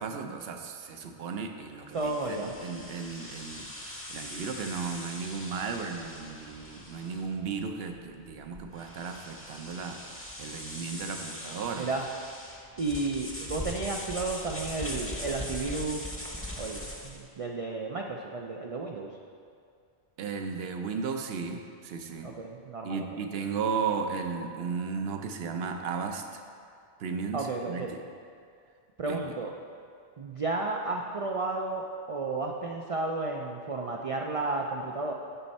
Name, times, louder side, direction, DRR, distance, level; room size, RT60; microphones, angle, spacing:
voice 1, 0.0-11.9 20.2-22.3 22.8-26.4 27.0-28.0 29.1-29.3, right 5 dB, 70° right, 5 dB, 0.8 m, -35 dB
Dry Erase, 1.9-17.3, left 1 dB, 15° left, 0.8 m, -41 dB
voice 2, 1.9-2.5 11.8-12.1 12.8-16.2 16.6-19.1 22.2-23.1 27.3-27.9 29.0-29.5 30.2-35.1, right 3 dB, 50° right, 0 dB, 0.4 m, -32 dB
11.0 x 4.4 x 4.2 m, 2.3 s
omnidirectional pair, 1.1 m